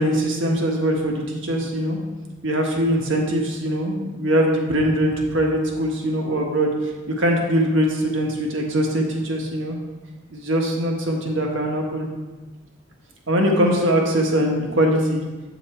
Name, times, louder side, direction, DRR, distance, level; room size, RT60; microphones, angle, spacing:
voice 1, 0.0-2.0 2.4-9.8 10.3-12.1 13.3-15.2, equal, 70° right, 1 dB, 1.4 m, -22 dB
8.5 x 5.8 x 4.4 m, 1.2 s
head